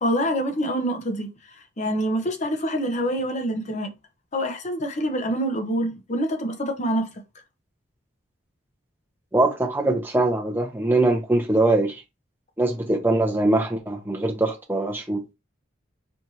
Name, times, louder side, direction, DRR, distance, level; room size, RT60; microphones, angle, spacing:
voice 1, 0.0-3.9 4.3-7.1, equal, 35° left, 0.7 m, -26 dB
voice 2, 9.3-12.0 12.6-15.2, right 2 dB, 10° right, 0.7 m, -22 dB
4.4 x 2.5 x 2.7 m
head